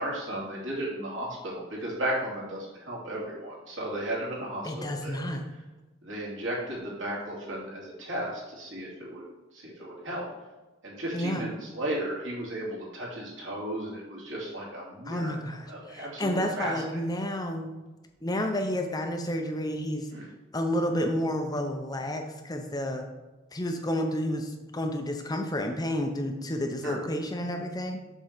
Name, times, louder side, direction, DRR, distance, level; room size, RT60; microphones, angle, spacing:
voice 1, 0.0-5.2 6.0-9.2 9.5-10.2 10.8-15.4 15.7-17.0 20.1-20.3 26.8-27.0, right 1 dB, 70° right, -4 dB, 2.8 m, -34 dB
voice 2, 4.6-5.6 11.1-11.5 15.1-17.8 18.2-20.1 20.5-23.1 23.5-28.1, equal, 20° left, 4 dB, 0.7 m, -30 dB
7.3 x 3.8 x 6.5 m, 1.1 s
head